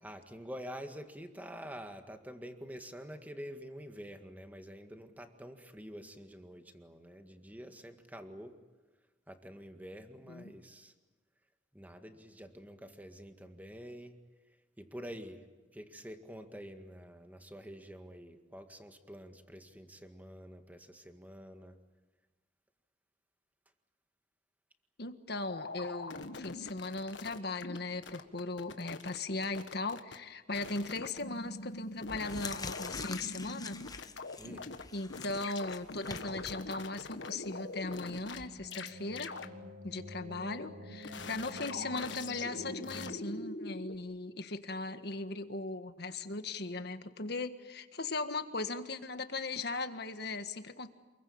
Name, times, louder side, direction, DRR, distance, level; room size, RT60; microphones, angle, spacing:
voice 1, 0.0-8.5 9.3-10.9 11.7-14.1 14.8-15.4 15.7-21.8 34.4-34.7, equal, 10° right, 6 dB, 1.9 m, -47 dB
voice 2, 25.0-33.8 34.9-39.3 39.8-50.9, left 3 dB, 60° left, 9 dB, 1.6 m, -38 dB
sound 1, 25.5-27.8 28.0-29.2 29.4-30.2 30.5-34.8 35.1-38.4 38.7-38.9 39.2-39.5 41.0-44.0, left 3 dB, 85° left, 1.5 m, -43 dB
sound 2, 31.4-31.5 32.0-38.5, left 4 dB, 20° left, 1.1 m, -46 dB
sound 3, 37.3-43.1, equal, 65° right, 4.9 m, -48 dB
28.5 x 22.0 x 8.7 m, 1.2 s
head